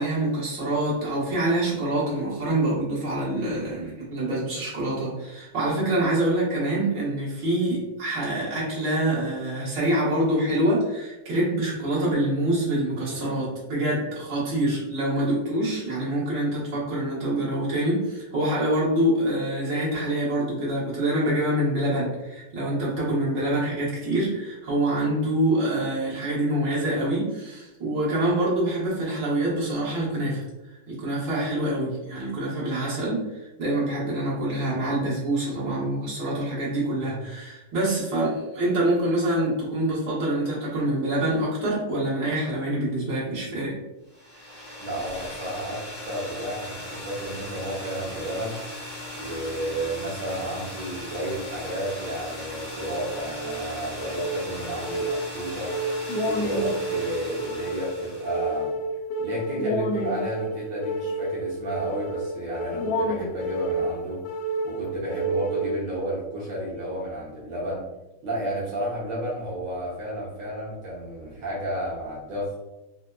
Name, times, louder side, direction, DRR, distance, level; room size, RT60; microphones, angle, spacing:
voice 1, 0.0-30.4 30.9-33.3 33.6-43.8, right 1 dB, 55° right, -8 dB, 1.8 m, -25 dB
sound 1, 44.1-58.6, left 1 dB, 50° left, 0.7 m, -38 dB
voice 2, 44.8-48.6 49.1-55.7 56.2-58.7 59.2-64.2 64.6-67.9 68.2-72.6, right 1 dB, 75° right, -6 dB, 1.6 m, -32 dB
sound 2, 53.1-66.1, right 1 dB, 75° left, 1.0 m, -30 dB
4.8 x 2.1 x 2.2 m, 1.0 s
omnidirectional pair, 2.3 m